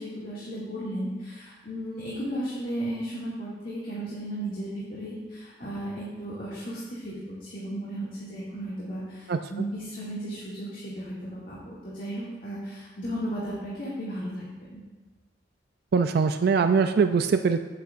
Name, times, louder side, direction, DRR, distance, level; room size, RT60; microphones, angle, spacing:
voice 1, 0.0-14.8, right 1 dB, 50° left, -8 dB, 2.1 m, -35 dB
voice 2, 15.9-17.6, right 5 dB, 55° right, 8 dB, 0.4 m, -22 dB
15.5 x 8.2 x 2.5 m, 1.3 s
head